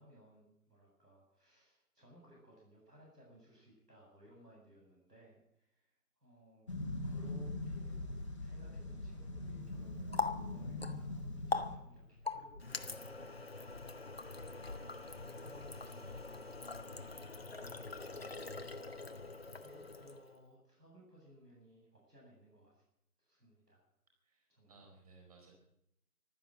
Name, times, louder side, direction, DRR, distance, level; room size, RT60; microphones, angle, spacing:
voice 1, 0.0-6.7 7.0-8.1 8.4-22.8 23.2-23.8 24.5-24.8, equal, 90° right, -2 dB, 7.9 m, -62 dB
sound 1, 6.7-11.8, left 2 dB, 20° left, 1.5 m, -42 dB
Water tap faucet, 9.6-20.4, left 3 dB, 40° left, 0.9 m, -43 dB
voice 2, 24.2-25.5, right 3 dB, 25° right, 1 dB, 4.6 m, -61 dB
15.0 x 12.5 x 7.3 m, 0.80 s
figure-of-eight pair, 160°, 46 cm